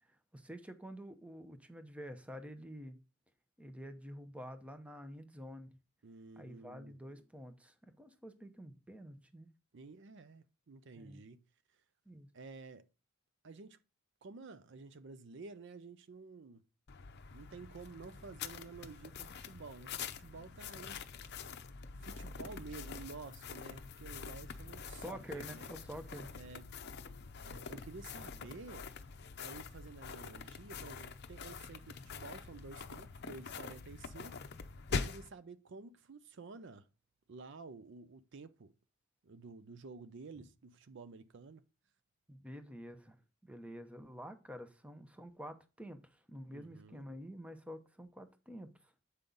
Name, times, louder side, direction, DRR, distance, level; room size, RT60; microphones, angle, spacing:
voice 1, 0.0-3.0 3.6-5.8 6.4-9.5 11.0-11.2 12.1-12.3 25.0-26.3 42.3-48.9, equal, 5° right, 0.7 m, -49 dB
voice 2, 6.0-7.0 9.7-11.4 12.3-12.9 13.4-13.8 14.2-16.6 17.3-21.0 22.0-25.7 26.3-26.7 27.4-28.9 29.4-34.4 34.9-36.9 37.3-38.7 39.2-41.6 46.5-47.0, right 4 dB, 60° right, 0.5 m, -51 dB
sound 1, 16.9-35.3, left 5 dB, 50° left, 0.6 m, -45 dB
8.1 x 5.4 x 3.8 m
head